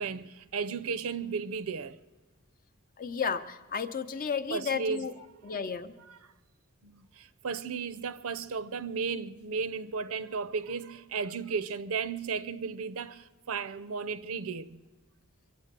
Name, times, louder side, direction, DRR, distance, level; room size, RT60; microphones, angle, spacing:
voice 1, 0.0-2.0 4.5-5.4 6.1-6.2 6.8-14.8, right 5 dB, 75° right, 0.6 m, -35 dB
voice 2, 3.0-5.1 5.4-5.9, left 6 dB, 40° left, 0.6 m, -33 dB
24.0 x 8.1 x 6.7 m
head